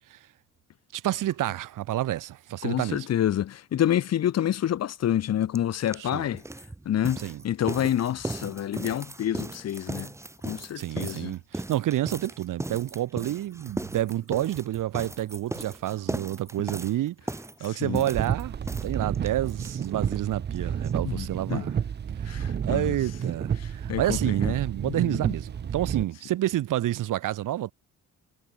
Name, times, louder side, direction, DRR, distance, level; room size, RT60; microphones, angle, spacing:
voice 1, 0.9-3.1 6.0-6.3 7.2-7.4 10.8-17.2 17.6-18.6 18.8-21.7 22.2-27.7, right 13 dB, 85° right, 2.4 m, -29 dB
voice 2, 2.6-6.4 6.8-10.1 10.4-11.3 17.8-18.0 21.0-21.6 22.3-22.9 23.9-24.2 24.4-24.5 24.9-25.3, left 11 dB, 55° left, 1.7 m, -28 dB
sound 1, 5.5-5.6 5.9-20.3 20.5-20.6 20.8-20.9 21.2-21.3, right 2 dB, 10° right, 2.6 m, -37 dB
sound 2, 18.1-26.0, right 8 dB, 35° right, 1.0 m, -30 dB
cardioid pair, 175°, 31 cm